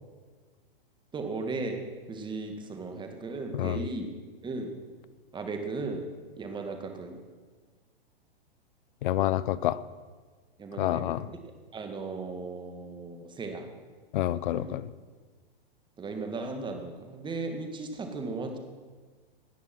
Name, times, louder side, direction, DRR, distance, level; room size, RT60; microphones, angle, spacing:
voice 1, 1.1-1.8 2.1-4.1 4.4-4.7 5.3-6.1 6.4-7.2 10.6-11.4 11.7-13.7 14.5-14.7 16.0-18.6, right 3 dB, 15° right, 5 dB, 2.0 m, -36 dB
voice 2, 3.5-3.8 9.0-9.8 10.8-11.2 14.1-14.9, left 13 dB, 55° left, 18 dB, 0.7 m, -28 dB
17.5 x 9.9 x 6.1 m, 1.5 s
hypercardioid pair, 125°, 30 cm